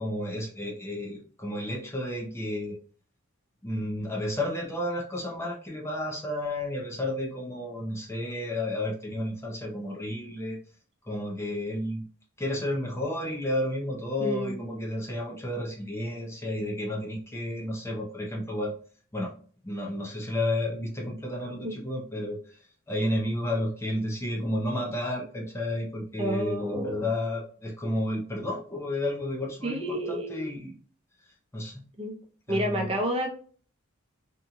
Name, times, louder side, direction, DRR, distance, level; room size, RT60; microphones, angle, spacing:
voice 1, 0.0-2.8 3.6-10.6 11.1-12.0 12.4-18.7 19.1-19.3 19.6-22.6 22.9-30.7 31.5-31.7 32.5-32.9, left 1 dB, 15° left, -2 dB, 0.5 m, -31 dB
voice 2, 14.2-14.6 21.6-21.8 26.2-27.1 29.6-30.5 32.0-32.2 32.5-33.3, equal, 30° right, 1 dB, 0.7 m, -30 dB
2.8 x 2.6 x 2.3 m, 0.43 s
head